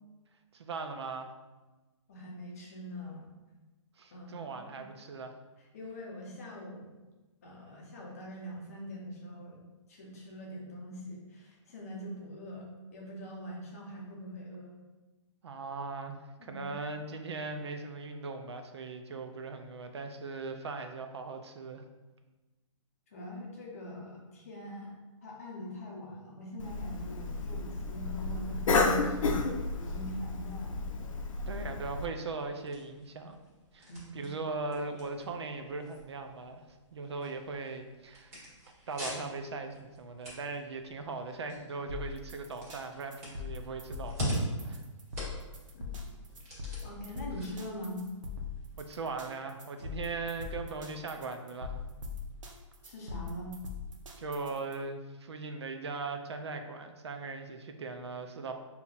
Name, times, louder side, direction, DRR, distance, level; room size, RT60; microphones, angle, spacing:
voice 1, 0.5-1.3 4.0-5.3 15.4-21.8 31.5-33.4 33.7-38.4 38.9-44.8 48.8-51.8 54.2-58.5, right 3 dB, 55° right, 6 dB, 0.4 m, -39 dB
voice 2, 2.1-3.3 4.1-4.8 5.6-6.9 7.4-9.6 9.9-14.8 16.4-16.7 23.1-24.9 25.2-30.9 33.9-34.3 45.7-45.9 46.8-48.0 52.8-53.6, equal, 30° left, -2 dB, 0.7 m, -43 dB
Cough, 26.6-32.1, left 3 dB, 85° left, 0.6 m, -32 dB
sound 1, 31.8-48.8, equal, 30° right, 1.4 m, -43 dB
sound 2, 41.9-54.7, left 4 dB, 75° right, 0.9 m, -42 dB
5.5 x 2.8 x 2.4 m, 1.2 s
hypercardioid pair, 175°, 17 cm